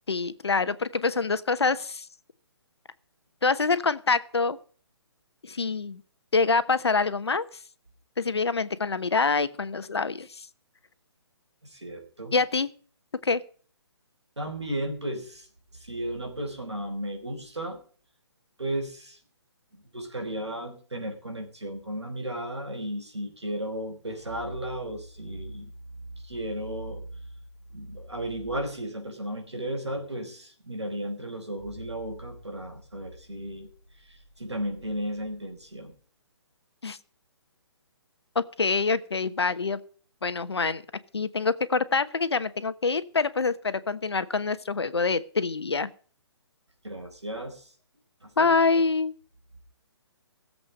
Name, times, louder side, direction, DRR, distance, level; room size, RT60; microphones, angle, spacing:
voice 1, 0.1-2.1 3.4-4.6 5.4-6.0 6.3-7.5 8.2-10.5 12.3-12.7 13.2-13.4 36.8-37.0 38.3-39.8 40.2-40.8 41.1-45.9 48.4-49.1, left 4 dB, 65° left, 14 dB, 1.1 m, -25 dB
voice 2, 11.6-12.3 14.4-15.5 15.7-17.8 18.6-19.2 19.7-27.3 27.7-33.7 34.0-35.9 46.8-47.7 48.2-48.9, right 1 dB, 80° right, 4 dB, 4.9 m, -35 dB
16.5 x 7.8 x 6.5 m, 0.43 s
figure-of-eight pair, 135°, 14 cm